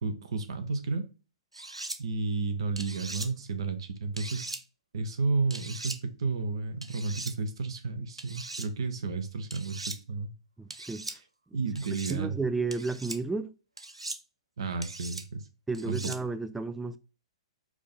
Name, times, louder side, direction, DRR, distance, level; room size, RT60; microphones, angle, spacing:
voice 1, 0.0-1.1 2.0-4.5 4.9-10.3 11.5-12.3 14.6-15.5 15.9-16.1, right 4 dB, 65° right, 0.9 m, -32 dB
sound 1, 1.5-2.0 2.8-3.3 4.2-4.6 5.5-6.0 6.8-7.3 8.2-8.7 9.5-10.0 10.7-11.2 11.8-12.2 12.7-13.2 13.8-14.2 14.8-15.2 15.7-16.2, right 2 dB, 90° right, 0.5 m, -39 dB
voice 2, 10.6-11.1 12.1-13.5 15.7-17.0, right 3 dB, 5° right, 0.3 m, -32 dB
4.8 x 2.7 x 4.0 m
figure-of-eight pair, 115°, 3 cm